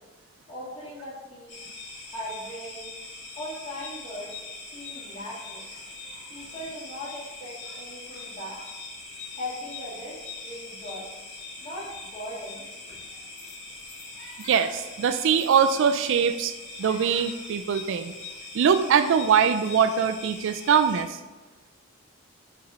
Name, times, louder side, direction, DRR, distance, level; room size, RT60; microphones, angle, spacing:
voice 1, 0.5-1.6 2.1-2.9 3.4-4.3 4.7-5.6 6.3-8.6 9.4-11.1 11.6-12.6, left 1 dB, 30° left, -7 dB, 1.9 m, -39 dB
sound 1, 1.5-21.0, left 3 dB, 55° left, 1.6 m, -42 dB
voice 2, 14.4-16.5 16.8-18.1 18.5-21.2, right 7 dB, 55° right, 10 dB, 0.3 m, -22 dB
6.0 x 4.2 x 4.9 m, 1.2 s
head